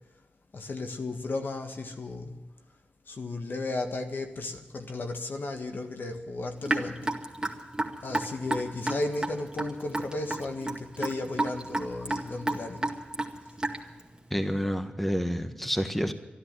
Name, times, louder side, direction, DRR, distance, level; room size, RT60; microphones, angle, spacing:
voice 1, 0.5-2.4 3.1-7.0 8.0-12.9, left 2 dB, 65° left, 5 dB, 1.6 m, -34 dB
Raindrop / Drip, 6.7-14.0, right 2 dB, 20° right, 2.0 m, -31 dB
voice 2, 14.3-16.1, equal, 5° left, 8 dB, 1.4 m, -29 dB
13.0 x 12.0 x 9.5 m, 1.1 s
cardioid pair, 45°, 4 cm